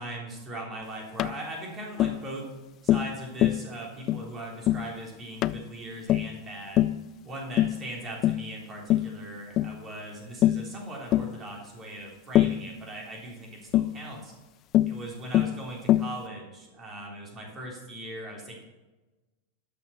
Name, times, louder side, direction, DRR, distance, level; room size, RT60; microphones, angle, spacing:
voice 1, 0.0-2.5 2.8-6.8 7.2-14.3 14.9-18.6, right 1 dB, 25° right, -1 dB, 3.5 m, -39 dB
Tap, 1.2-1.4 2.0-2.2 2.9-3.1 3.4-3.6 4.1-4.3 4.7-4.9 5.4-5.6 6.1-6.3 6.8-7.0 7.6-7.8 8.2-8.5 8.9-9.1 9.6-9.7 10.4-10.7 11.1-11.3 12.3-12.6 13.7-13.9 14.7-15.0 15.3-15.6 15.9-16.1, left 13 dB, 35° left, 0.3 m, -23 dB
12.0 x 6.2 x 5.9 m, 1.1 s
figure-of-eight pair, 90°, 0 cm